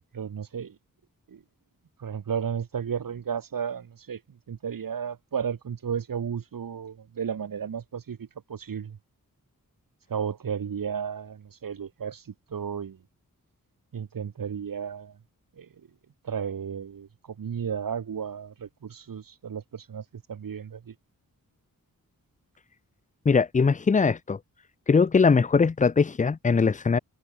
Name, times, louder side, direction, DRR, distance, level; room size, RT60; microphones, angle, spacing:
voice 1, 0.1-0.7 1.3-1.4 2.0-4.2 4.5-9.0 10.1-12.2 12.5-13.0 13.9-15.1 15.6-15.7 16.2-17.1 17.4-20.9, right 7 dB, 70° right, 1.1 m, -33 dB
voice 2, 23.3-24.4 24.9-27.0, left 5 dB, 25° left, 0.4 m, -21 dB
wide cardioid pair, 115°, 35 cm